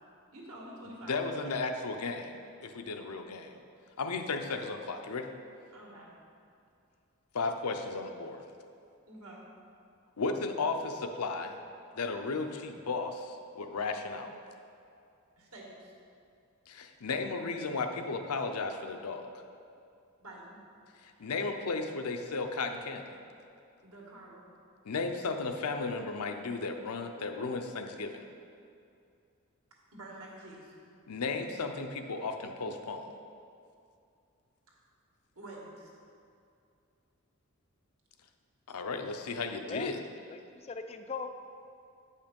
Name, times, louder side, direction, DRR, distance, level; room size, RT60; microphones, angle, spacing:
voice 1, 0.3-1.6 5.7-6.1 9.1-9.5 15.4-15.9 20.2-20.6 21.1-21.3 23.8-24.5 29.9-30.8 35.4-35.9, right 1 dB, 75° right, -3 dB, 1.8 m, -48 dB
voice 2, 1.1-3.6 4.0-5.3 7.3-8.4 10.2-11.6 11.9-14.3 16.7-19.3 21.0-23.1 24.9-28.2 31.1-33.1 38.7-40.0, left 3 dB, 85° left, 6 dB, 0.6 m, -34 dB
voice 3, 40.3-41.3, left 4 dB, 25° left, 7 dB, 0.3 m, -39 dB
8.3 x 5.6 x 5.2 m, 2.5 s
head